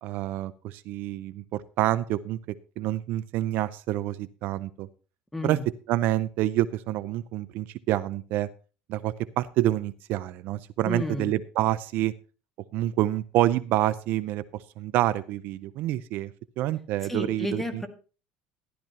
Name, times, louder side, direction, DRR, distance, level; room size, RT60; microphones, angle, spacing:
voice 1, 0.0-4.9 5.4-5.6 5.9-8.5 8.9-12.1 12.7-17.6, right 14 dB, 60° right, 16 dB, 0.5 m, -27 dB
voice 2, 5.3-5.6 10.8-11.3 17.1-17.9, left 1 dB, 5° left, 3 dB, 2.0 m, -31 dB
13.5 x 12.0 x 2.9 m, 0.36 s
cardioid pair, 130°, 4 cm